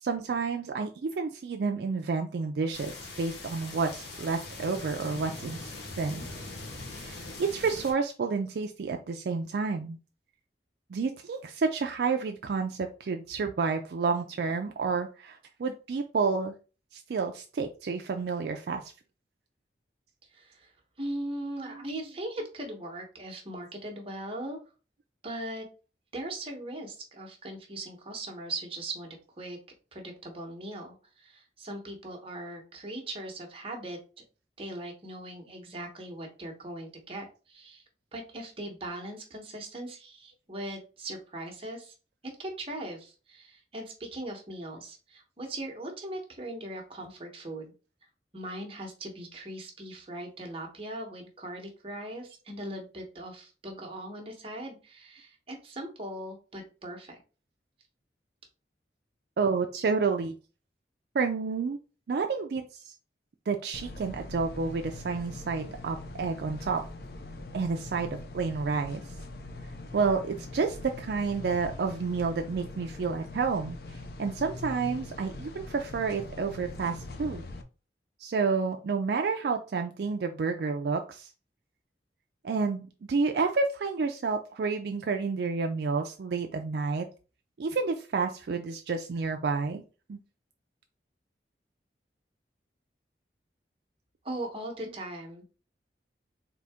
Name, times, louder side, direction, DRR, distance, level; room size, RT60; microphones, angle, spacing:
voice 1, 0.0-5.7 6.0-6.2 6.9-10.0 10.9-16.5 16.9-18.9 59.4-60.3 61.1-61.8 62.1-62.9 63.5-66.8 67.5-69.0 69.9-73.8 74.2-77.5 78.2-81.3 82.4-87.1 87.6-89.8 90.1-90.2, right 4 dB, 65° right, 4 dB, 0.4 m, -30 dB
sound 1, 2.7-7.9, left 2 dB, 75° left, 1.1 m, -41 dB
voice 2, 20.3-20.7 21.0-24.6 25.2-25.6 26.1-29.6 29.9-34.0 34.6-37.8 38.1-41.9 42.2-47.7 48.3-57.2 94.2-95.4, right 1 dB, 30° right, 1 dB, 1.0 m, -39 dB
sound 2, 63.7-77.6, left 2 dB, 55° left, 0.5 m, -42 dB
3.9 x 2.7 x 3.5 m, 0.34 s
head